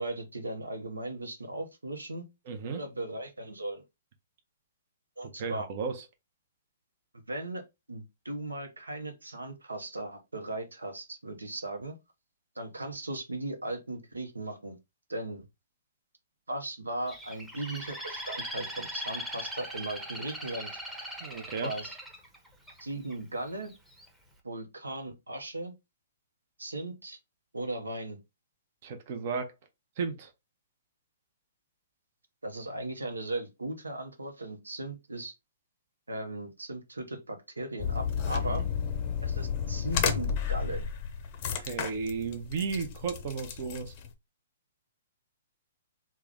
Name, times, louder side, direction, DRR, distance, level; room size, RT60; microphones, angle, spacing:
voice 1, 0.0-2.3 2.8-3.8 5.2-5.7 7.3-7.6 7.9-12.0 12.6-14.8 15.1-15.5 16.5-20.7 21.6-21.9 22.8-23.7 24.4-25.7 26.6-27.2 27.5-28.2 32.4-35.3 36.1-38.7 39.2-40.9, right 2 dB, 85° right, 0.7 m, -37 dB
voice 2, 2.5-2.8 5.4-6.0 21.2-21.7 28.8-29.5 30.0-30.3 38.3-38.6 41.5-43.9, right 5 dB, 50° right, 0.7 m, -34 dB
Bird, 17.1-23.1 23.7-24.1, equal, 5° right, 0.8 m, -40 dB
sound 1, 37.8-44.1, left 7 dB, 40° left, 0.5 m, -32 dB
3.4 x 2.1 x 3.4 m
figure-of-eight pair, 120°, 0 cm